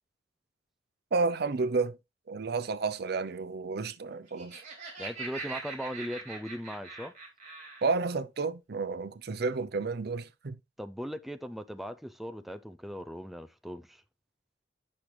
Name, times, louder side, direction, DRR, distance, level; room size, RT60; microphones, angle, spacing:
voice 1, 1.1-2.0 2.3-4.6 7.8-10.6, right 4 dB, 60° right, 0.6 m, -31 dB
Laughter, 4.1-8.0, right 4 dB, 45° right, 2.6 m, -42 dB
voice 2, 5.0-7.1 10.8-14.0, equal, ahead, 0.3 m, -39 dB
8.6 x 6.1 x 3.2 m
head